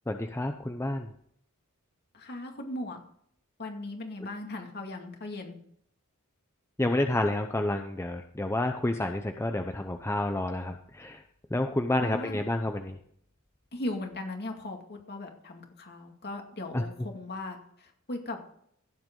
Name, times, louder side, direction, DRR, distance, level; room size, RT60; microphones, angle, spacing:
voice 1, 0.1-1.1 6.8-11.2 11.5-13.0 16.7-16.8, left 1 dB, 10° left, 6 dB, 0.6 m, -29 dB
voice 2, 2.1-3.0 3.6-5.6 12.0-12.4 13.7-18.4, left 2 dB, 50° left, 3 dB, 2.3 m, -38 dB
16.5 x 7.8 x 3.9 m, 0.66 s
head